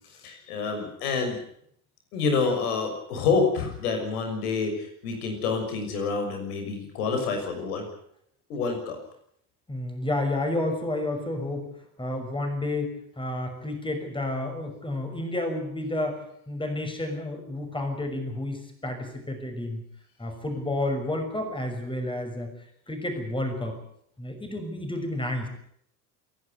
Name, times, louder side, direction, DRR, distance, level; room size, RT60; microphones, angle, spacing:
voice 1, 0.2-1.4 2.1-7.8 8.5-9.0, left 4 dB, 75° left, 5 dB, 6.4 m, -27 dB
voice 2, 9.7-11.7 12.0-19.8 20.2-22.5 22.9-23.8 24.2-25.5, left 1 dB, 10° left, 5 dB, 6.1 m, -30 dB
27.5 x 11.5 x 9.5 m, 0.68 s
hypercardioid pair, 75°, 46 cm